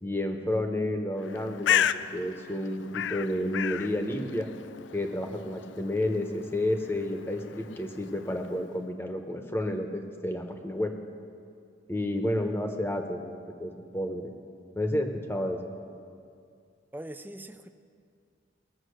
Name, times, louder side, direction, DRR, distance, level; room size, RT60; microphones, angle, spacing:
voice 1, 0.0-4.5 4.9-10.9 11.9-14.3 14.8-15.6, left 1 dB, 10° left, 4 dB, 1.0 m, -31 dB
Bird, 1.2-8.8, left 9 dB, 75° left, 0.4 m, -34 dB
voice 2, 16.9-17.7, right 1 dB, 10° right, 9 dB, 0.4 m, -41 dB
20.0 x 7.5 x 6.5 m, 2.3 s
head